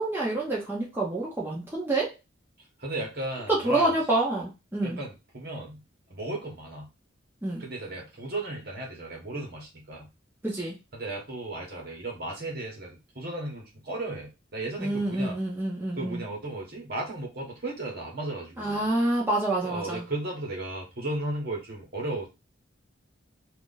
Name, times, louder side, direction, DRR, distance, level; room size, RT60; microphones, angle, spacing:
voice 1, 0.0-2.1 3.5-5.0 7.4-7.6 10.4-10.7 14.8-16.2 18.6-20.0, right 2 dB, 10° right, -5 dB, 0.9 m, -27 dB
voice 2, 2.8-4.0 4.8-5.8 6.1-6.9 7.6-10.1 10.9-15.4 15.9-18.9 19.6-22.3, right 2 dB, 50° right, -1 dB, 1.2 m, -35 dB
3.0 x 2.5 x 3.9 m, 0.26 s
head